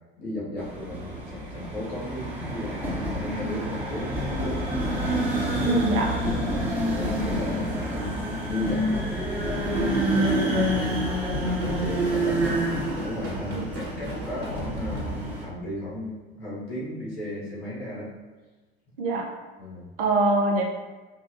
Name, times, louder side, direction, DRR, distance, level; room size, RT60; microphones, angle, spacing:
voice 1, 0.2-4.6 5.5-5.8 6.4-10.9 11.5-12.6 13.0-18.1 19.6-19.9, left 1 dB, 70° left, -7 dB, 1.4 m, -35 dB
sound 1, 0.6-15.4, equal, 5° right, 0.9 m, -28 dB
voice 2, 5.6-6.1 13.6-13.7 19.0-19.3 20.0-20.6, right 2 dB, 60° right, 0 dB, 0.7 m, -23 dB
Drum kit / Drum, 10.8-15.6, right 2 dB, 45° right, 1.2 m, -39 dB
5.5 x 2.2 x 2.5 m, 1.3 s
figure-of-eight pair, 65°, 31 cm